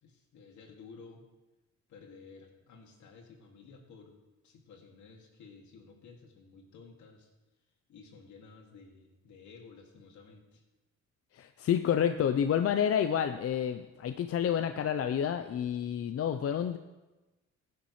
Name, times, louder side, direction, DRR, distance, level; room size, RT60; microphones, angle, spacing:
voice 1, 0.0-1.2 1.9-7.3 7.9-10.6, left 4 dB, 75° left, 2 dB, 2.3 m, -54 dB
voice 2, 11.3-16.8, left 9 dB, 50° left, 9 dB, 0.6 m, -29 dB
16.0 x 10.5 x 3.2 m, 1.1 s
cardioid pair, 90°, 30 cm